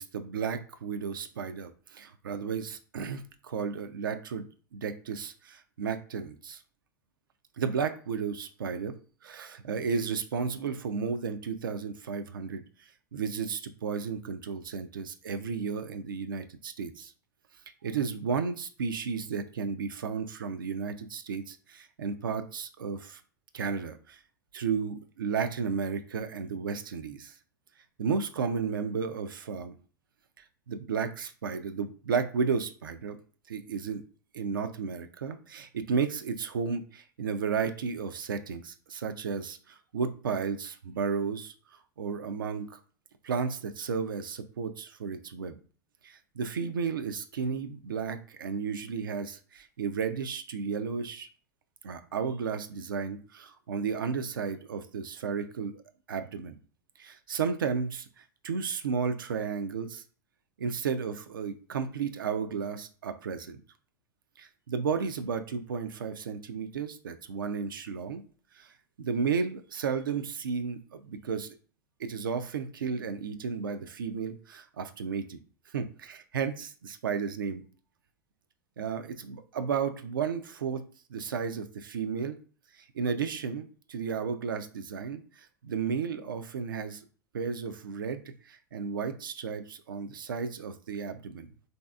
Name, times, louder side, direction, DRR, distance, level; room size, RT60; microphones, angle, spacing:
voice 1, 0.0-6.6 7.6-8.9 9.2-12.6 13.1-17.1 17.8-23.2 23.5-24.2 24.5-27.3 28.0-29.8 30.7-33.2 33.5-34.0 34.3-41.5 42.0-42.8 43.2-45.6 46.0-51.3 51.8-55.8 56.1-56.5 57.0-60.0 60.6-63.6 64.4-68.2 68.5-71.6 72.0-75.4 75.7-77.7 78.8-80.8 81.1-82.4 82.7-87.0 87.3-91.5, right 6 dB, 85° right, 9 dB, 0.4 m, -33 dB
3.3 x 2.6 x 2.3 m, 0.40 s
hypercardioid pair, 90°, 11 cm